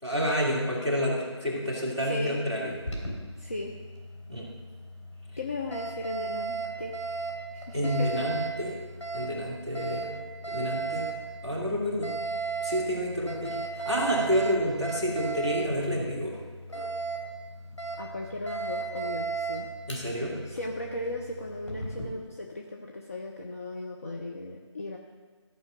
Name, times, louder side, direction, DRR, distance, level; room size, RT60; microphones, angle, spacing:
voice 1, 0.0-2.7 4.3-4.5 7.7-8.7 9.1-10.1 10.5-11.1 11.4-12.1 12.6-16.3 19.9-20.4, equal, 5° left, -12 dB, 1.7 m, -29 dB
voice 2, 2.0-2.4 3.4-3.7 5.4-6.9 7.5-8.2 18.0-19.7 20.4-25.0, left 2 dB, 30° left, 0 dB, 0.6 m, -36 dB
Alarm, 2.7-22.1, right 4 dB, 85° left, 3.5 m, -36 dB
14.0 x 5.5 x 6.1 m, 1.4 s
figure-of-eight pair, 160°, 16 cm